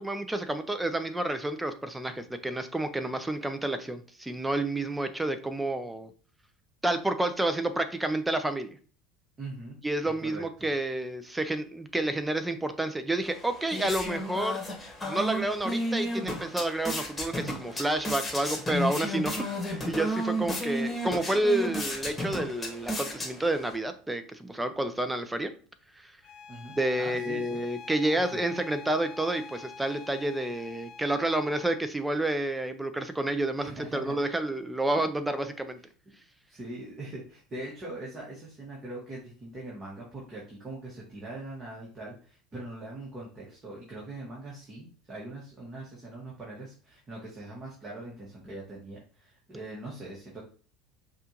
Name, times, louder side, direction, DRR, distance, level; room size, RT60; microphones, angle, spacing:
voice 1, 0.0-6.1 6.8-8.8 9.8-14.6 15.0-19.3 19.7-25.5 26.0-26.1 26.7-35.8, right 1 dB, 10° right, 9 dB, 0.6 m, -29 dB
voice 2, 9.4-9.8 10.2-10.7 26.5-27.6 28.2-28.4 33.6-34.2 36.5-50.4, right 2 dB, 30° right, -5 dB, 1.6 m, -42 dB
sound 1, 13.2-23.8, equal, 15° left, 1.4 m, -33 dB
Bowed string instrument, 26.2-31.8, left 5 dB, 50° left, 0.5 m, -46 dB
5.4 x 2.5 x 3.0 m, 0.41 s
hypercardioid pair, 70°, 0 cm